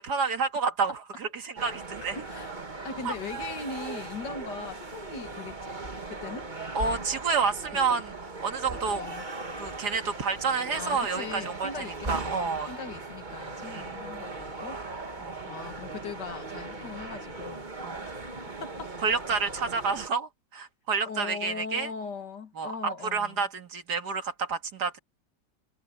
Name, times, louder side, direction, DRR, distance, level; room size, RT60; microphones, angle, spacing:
voice 1, 0.0-2.2 3.1-3.2 6.7-8.1 8.4-9.0 9.6-12.7 13.7-13.9 15.2-15.5 17.8-18.0 19.0-21.9 22.6-25.0, right 5 dB, 65° right, 2.4 m, -29 dB
sound 1, 1.6-20.1, right 3 dB, 25° right, 1.8 m, -38 dB
voice 2, 2.1-2.5 2.8-5.7 6.1-6.5 7.9-8.0 8.9-9.2 10.7-14.8 15.5-17.7 18.6-18.9 21.1-23.5, left 5 dB, 75° left, 2.4 m, -40 dB
omnidirectional pair, 1.9 m